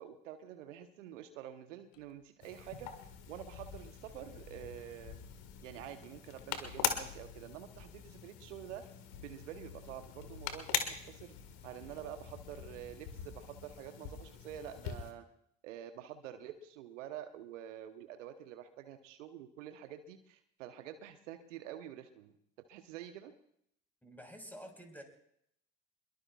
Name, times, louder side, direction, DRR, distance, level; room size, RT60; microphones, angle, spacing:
voice 1, 0.0-5.2 5.6-8.8 9.2-11.3 11.6-15.2 15.6-22.3 22.7-23.3, right 10 dB, 75° right, 9 dB, 1.1 m, -48 dB
sound 1, 1.9-2.2 4.1-5.0 6.5-7.8 8.8-11.0 11.7-12.9, left 7 dB, 90° left, 0.7 m, -56 dB
sound 2, 2.4-15.1, left 9 dB, 65° left, 1.9 m, -42 dB
voice 2, 24.0-25.0, equal, 5° left, 3 dB, 4.7 m, -49 dB
24.5 x 22.0 x 2.4 m, 0.71 s
figure-of-eight pair, 55°, 37 cm